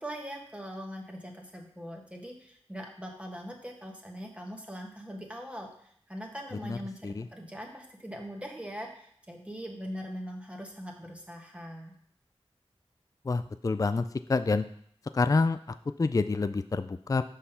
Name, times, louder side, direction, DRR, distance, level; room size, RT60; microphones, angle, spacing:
voice 1, 0.0-11.9, equal, 10° right, 1 dB, 1.3 m, -41 dB
voice 2, 13.2-14.0 14.3-14.6 15.1-15.6 16.0-17.2, left 3 dB, 35° left, 11 dB, 0.3 m, -27 dB
6.3 x 5.6 x 5.7 m, 0.64 s
wide cardioid pair, 55°, 11 cm